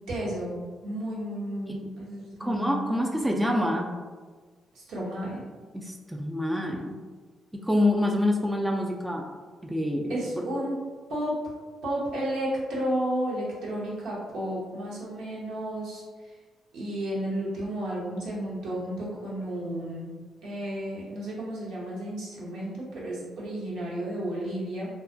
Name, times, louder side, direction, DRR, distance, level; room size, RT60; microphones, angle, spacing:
voice 1, 0.1-3.8 4.7-5.5 10.1-10.8 11.1-11.3 11.8-16.0 16.7-20.1 20.4-24.9, right 1 dB, 80° right, -6 dB, 0.8 m, -32 dB
voice 2, 2.4-3.9 5.7-7.0 7.5-9.2 9.6-10.5, left 1 dB, 10° right, 0 dB, 0.3 m, -27 dB
2.3 x 2.1 x 2.5 m, 1.4 s
supercardioid pair, 60°, 0 cm